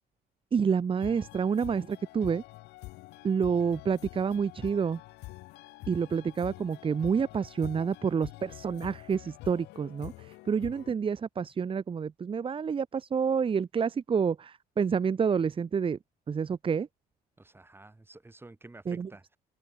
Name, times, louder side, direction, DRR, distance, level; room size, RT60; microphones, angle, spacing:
voice 1, 0.5-2.4 3.2-5.0 5.9-10.1 10.5-16.0 16.3-16.9 18.9-19.1, right 6 dB, 30° right, 1.2 m, -28 dB
sound 1, 1.0-10.9, left 20 dB, 90° left, 3.2 m, -46 dB
voice 2, 17.4-19.4, right 2 dB, 15° right, 7.4 m, -51 dB
open air
cardioid pair, 110°, 17 cm